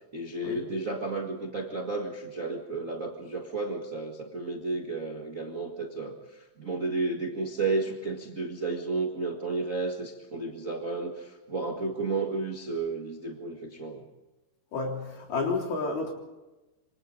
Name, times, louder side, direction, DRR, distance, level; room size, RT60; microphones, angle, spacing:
voice 1, 0.1-14.0, right 3 dB, 65° right, 1 dB, 0.8 m, -32 dB
voice 2, 14.7-16.1, left 3 dB, 65° left, 1 dB, 5.4 m, -30 dB
26.5 x 25.5 x 4.0 m, 1.1 s
omnidirectional pair, 4.7 m